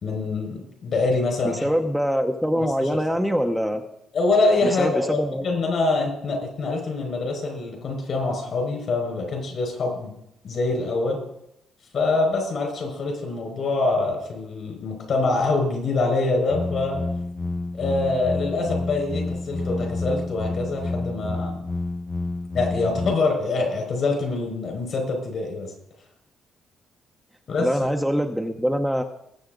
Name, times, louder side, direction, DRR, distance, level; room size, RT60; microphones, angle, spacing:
voice 1, 0.0-1.7 2.6-2.9 4.1-10.1 10.4-11.2 11.9-17.0 17.7-21.6 22.5-25.7 27.5-27.7, left 3 dB, 60° left, 2 dB, 5.3 m, -25 dB
voice 2, 1.4-3.8 4.6-5.5 27.6-29.0, equal, ahead, 4 dB, 0.9 m, -24 dB
sound 1, 16.5-23.1, left 2 dB, 30° left, 0.9 m, -29 dB
20.5 x 7.9 x 3.9 m, 0.79 s
cardioid pair, 90°, 0 cm